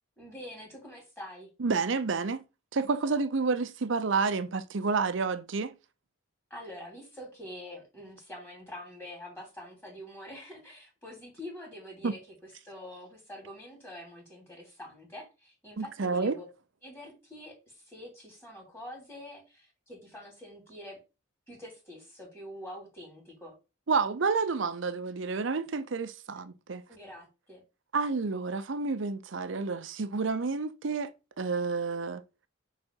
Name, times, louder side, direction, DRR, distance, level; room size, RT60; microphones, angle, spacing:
voice 1, 0.2-1.5 6.5-12.2 12.6-16.5 16.8-21.0 21.5-23.5 26.9-27.6, left 1 dB, 10° left, 2.7 m, -46 dB
voice 2, 1.6-2.4 2.7-5.7 12.0-12.1 15.8-16.3 23.9-26.8 27.9-31.1 31.4-32.2, right 4 dB, 65° right, 0.6 m, -29 dB
6.0 x 3.8 x 4.4 m
head